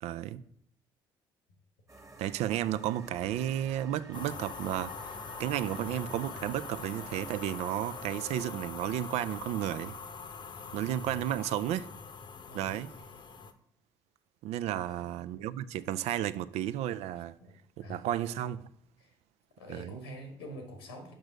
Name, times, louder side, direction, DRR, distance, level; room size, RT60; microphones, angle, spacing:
voice 1, 0.0-0.4 2.2-9.9 10.7-11.9 12.5-12.9 14.4-17.4 17.9-18.7 19.7-20.0, right 12 dB, 65° right, 0.4 m, -33 dB
sound 1, 1.9-8.5, right 2 dB, 25° right, 1.4 m, -52 dB
sound 2, 4.1-13.5, left 5 dB, 40° left, 0.8 m, -43 dB
voice 2, 10.8-11.1 12.5-13.2 14.7-15.3 17.4-18.1 19.0-19.1 19.6-21.1, equal, 90° left, 1.4 m, -47 dB
6.1 x 5.3 x 6.1 m
hypercardioid pair, 50°, 12 cm